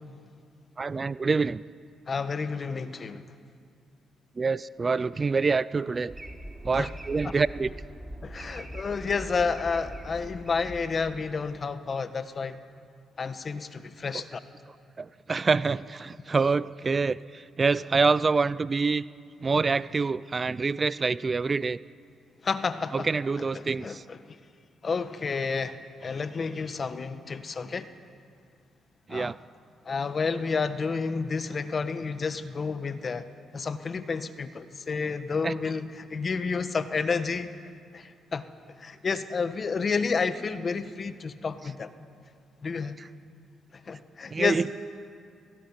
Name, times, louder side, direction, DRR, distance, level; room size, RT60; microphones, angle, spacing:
voice 1, 0.8-1.6 4.4-6.1 6.6-7.7 14.1-14.2 15.0-19.0 19.4-21.8 22.9-24.0 29.1-29.3 35.4-35.5 43.0-43.1 44.3-44.7, right 4 dB, 35° right, 18 dB, 0.5 m, -26 dB
voice 2, 2.1-3.2 6.8-6.9 8.2-12.6 13.2-14.4 22.4-23.1 23.5-24.4 24.8-27.9 29.1-29.3 29.8-33.3 33.5-37.5 37.9-38.4 38.8-41.9 42.6-43.0 43.9-44.7, left 5 dB, 45° left, 11 dB, 1.3 m, -30 dB
sound 1, 6.1-11.5, right 1 dB, 15° right, 3.7 m, -42 dB
18.0 x 17.5 x 9.9 m, 2.4 s
supercardioid pair, 60°, 0 cm